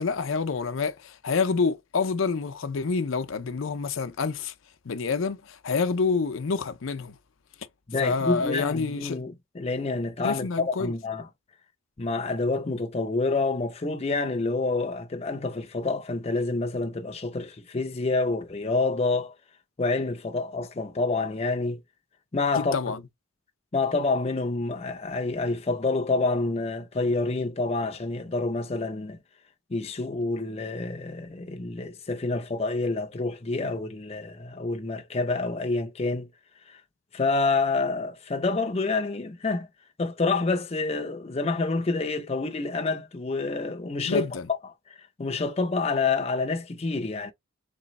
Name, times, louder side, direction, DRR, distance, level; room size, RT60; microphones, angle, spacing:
voice 1, 0.0-4.5 4.9-7.2 8.0-9.2 10.2-10.9 22.6-23.0 44.1-44.5, left 4 dB, 85° left, 0.6 m, -27 dB
voice 2, 7.9-11.3 12.0-19.3 19.8-21.8 22.3-22.8 23.7-29.2 29.7-36.3 36.7-36.8 37.1-39.7 40.0-44.3 45.2-47.3, left 3 dB, 30° left, 0.5 m, -28 dB
3.3 x 3.1 x 4.0 m
head